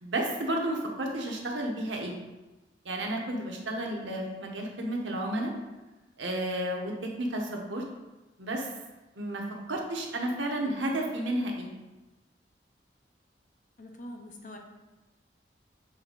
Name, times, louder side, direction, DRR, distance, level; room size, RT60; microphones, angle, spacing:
voice 1, 0.0-2.1 2.8-5.5 6.2-7.8 8.4-8.7 9.2-9.4 9.7-11.7, right 1 dB, 90° right, 0 dB, 1.1 m, -32 dB
voice 2, 13.8-14.6, left 1 dB, 45° left, 2 dB, 0.8 m, -44 dB
6.9 x 3.4 x 3.9 m, 1.1 s
head